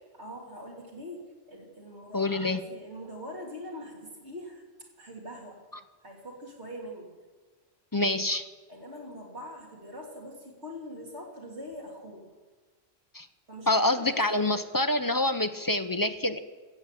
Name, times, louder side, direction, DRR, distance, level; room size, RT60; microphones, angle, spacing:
voice 1, 0.1-2.3 2.7-4.6 5.0-5.6 6.0-7.1 8.7-12.3 13.5-14.1 14.4-14.6, equal, 90° right, -1 dB, 3.3 m, -43 dB
voice 2, 2.1-2.6 7.9-8.5 13.1-13.3 13.7-16.4, left 2 dB, 25° left, 9 dB, 0.5 m, -26 dB
15.0 x 7.8 x 8.3 m, 1.3 s
omnidirectional pair, 1.1 m